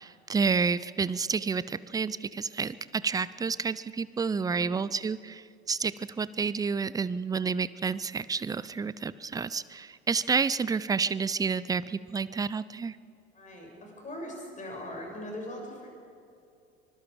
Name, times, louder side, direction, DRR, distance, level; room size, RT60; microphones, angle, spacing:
voice 1, 0.0-13.0, right 5 dB, 10° right, 18 dB, 0.5 m, -30 dB
voice 2, 13.3-15.9, left 1 dB, 25° left, 1 dB, 7.1 m, -40 dB
25.0 x 20.5 x 5.1 m, 2.5 s
figure-of-eight pair, 70°, 33 cm